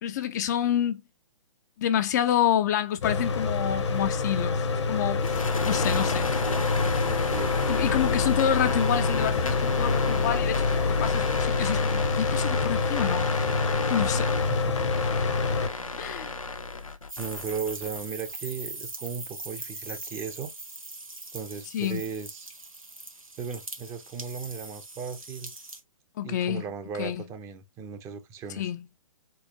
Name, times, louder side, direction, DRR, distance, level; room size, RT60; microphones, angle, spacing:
voice 1, 0.0-1.0 1.8-5.4 5.7-6.3 7.7-13.3 13.9-14.3 16.0-16.4 21.7-22.0 26.2-26.6 27.0-27.2 28.6-28.8, left 10 dB, 35° left, 0.5 m, -28 dB
Mechanical fan, 3.0-15.7, left 4 dB, 55° left, 1.0 m, -27 dB
sound 1, 5.2-18.0, left 3 dB, 80° left, 1.0 m, -32 dB
voice 2, 6.1-6.7 7.1-7.8 14.5-14.9 15.6-16.0 17.2-20.5 21.3-22.5 23.4-25.5 26.2-28.7, right 6 dB, 15° right, 0.6 m, -37 dB
sound 2, 17.1-25.8, right 2 dB, 90° right, 1.6 m, -41 dB
4.6 x 4.1 x 2.8 m
figure-of-eight pair, 120°, 17 cm